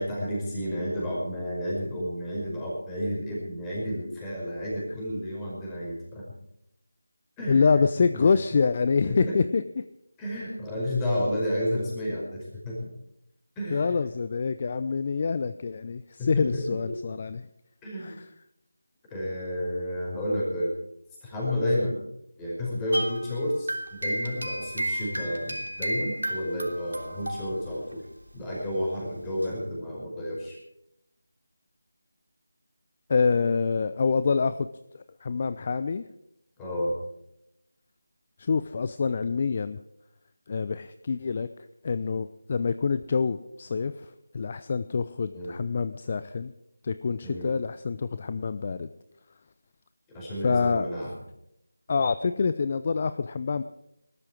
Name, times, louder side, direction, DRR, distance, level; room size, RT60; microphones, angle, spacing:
voice 1, 0.0-6.3 7.4-7.8 9.0-9.4 10.2-12.9 13.6-14.0 16.2-16.9 17.8-18.2 19.1-20.7 21.2-22.0 22.4-28.0 28.3-30.6 36.6-37.0 45.3-45.5 47.2-47.5 50.1-51.1, equal, 10° left, -5 dB, 5.3 m, -31 dB
voice 2, 7.5-9.8 13.7-17.5 18.0-18.2 33.1-34.7 34.9-36.0 38.4-39.8 40.5-41.5 41.8-46.5 46.8-48.9 50.4-50.9 51.9-53.6, left 5 dB, 35° left, 12 dB, 0.6 m, -26 dB
sound 1, 22.9-27.9 28.2-28.4 29.4-29.5, right 1 dB, 85° right, 3.3 m, -33 dB
20.0 x 13.0 x 4.7 m, 0.81 s
figure-of-eight pair, 165°, 0 cm